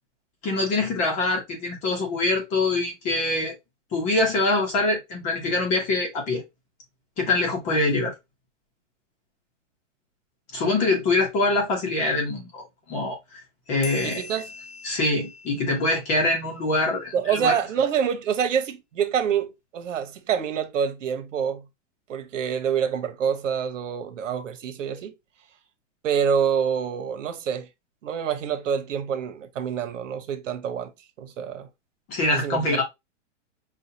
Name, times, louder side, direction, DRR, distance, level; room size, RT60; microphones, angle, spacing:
voice 1, 0.4-3.5 3.9-6.4 7.2-8.1 10.5-12.6 12.9-13.4 13.7-14.2 14.8-17.5 32.1-32.8, left 2 dB, 20° left, 0.9 m, -24 dB
sound 1, 13.8-16.9, left 5 dB, 75° left, 1.0 m, -42 dB
voice 2, 14.0-14.5 17.1-19.5 19.7-21.6 22.1-25.1 26.0-27.7 28.0-30.9 31.2-31.7 32.3-32.8, right 7 dB, 90° right, 1.1 m, -26 dB
5.5 x 2.4 x 2.7 m
supercardioid pair, 170°, 37 cm